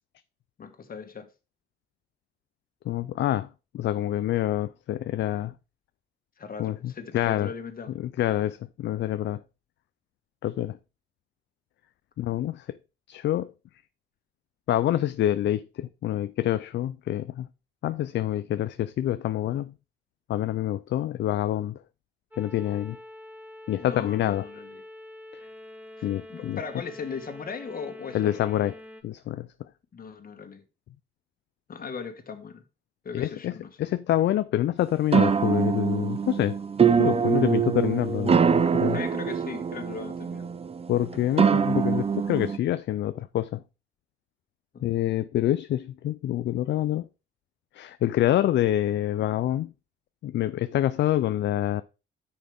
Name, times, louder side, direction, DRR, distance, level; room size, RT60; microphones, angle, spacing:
voice 1, 0.6-1.3 6.4-8.0 23.8-24.8 26.0-28.3 29.9-30.6 31.7-32.6 33.0-33.7 38.9-40.5 44.7-44.9, left 5 dB, 45° left, 1.9 m, -38 dB
voice 2, 2.9-3.5 3.7-5.5 6.6-7.5 8.0-9.4 10.4-10.8 12.2-12.8 13.1-13.5 14.7-17.5 17.8-19.7 20.3-21.8 22.4-23.0 23.7-24.5 25.3-25.4 26.0-26.6 28.1-28.7 29.0-29.5 33.1-36.6 37.0-39.0 40.9-43.6 44.8-47.1 47.7-49.7 50.2-51.8, left 12 dB, 65° left, 0.5 m, -26 dB
sound 1, 22.3-29.0, left 1 dB, 10° right, 1.5 m, -45 dB
sound 2, 35.1-42.6, right 6 dB, 30° right, 0.6 m, -24 dB
9.5 x 6.3 x 3.5 m
cardioid pair, 90°, 20 cm